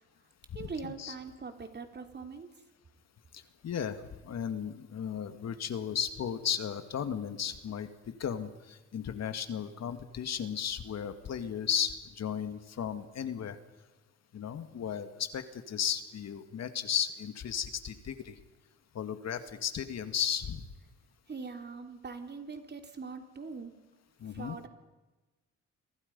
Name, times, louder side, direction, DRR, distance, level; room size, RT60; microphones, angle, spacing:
voice 1, 0.5-2.5 21.3-23.7 24.2-24.7, right 4 dB, 35° right, 5 dB, 3.3 m, -42 dB
voice 2, 3.3-7.9 8.2-13.6 14.3-18.4 18.9-20.6 24.2-24.6, left 8 dB, 60° left, 9 dB, 2.0 m, -35 dB
30.0 x 24.0 x 5.4 m, 1.1 s
cardioid pair, 90°, 30 cm